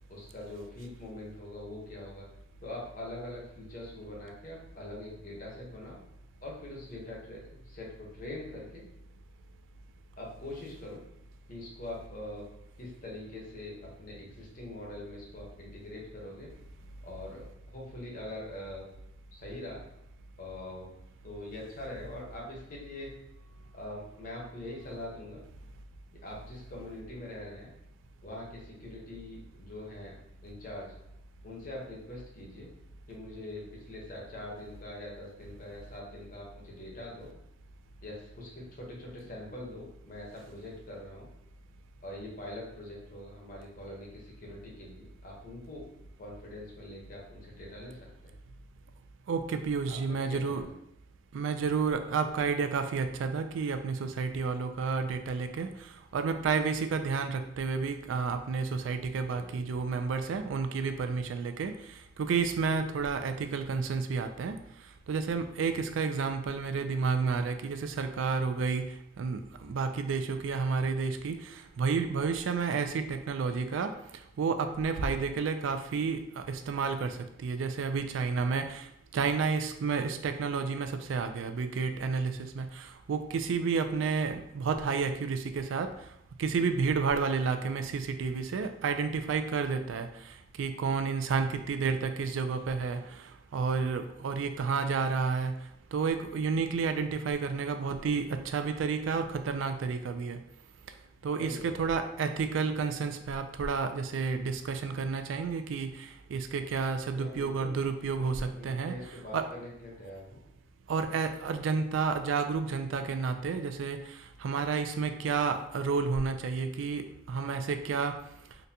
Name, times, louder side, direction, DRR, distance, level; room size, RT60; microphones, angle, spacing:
voice 1, 0.1-2.3 2.6-6.0 6.4-8.8 10.2-11.0 11.5-12.4 12.8-16.5 17.0-18.8 19.3-19.8 20.4-20.9 21.2-23.1 23.7-25.4 26.2-27.7 28.2-30.2 30.4-30.9 31.4-32.7 33.1-37.3 38.0-41.3 42.0-45.9 46.2-48.3 49.9-50.7 59.3-59.8 60.2-60.3 65.6-65.8 86.8-86.9 101.4-101.9 107.1-107.7 108.1-110.4, left 1 dB, 45° left, -2 dB, 0.8 m, -43 dB
voice 2, 49.3-50.6 51.3-61.7 62.2-64.6 65.1-68.8 69.2-74.0 74.4-85.9 86.4-95.5 95.9-100.4 101.2-109.4 110.9-118.2, right 5 dB, 75° right, 8 dB, 0.3 m, -31 dB
3.9 x 2.2 x 2.7 m, 0.79 s
head